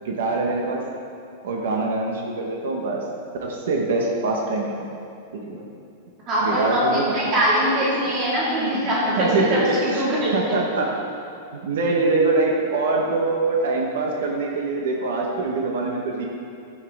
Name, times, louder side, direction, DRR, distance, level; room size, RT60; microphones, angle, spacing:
voice 1, 0.0-0.8 1.4-3.0 3.4-4.8 5.3-5.6 6.4-7.3 7.8-7.9 9.2-10.9 11.6-16.3, right 3 dB, 65° right, 0 dB, 1.3 m, -24 dB
voice 2, 6.3-10.4, equal, 25° right, -6 dB, 2.2 m, -22 dB
13.5 x 7.5 x 3.6 m, 2.5 s
supercardioid pair, 180°, 0 cm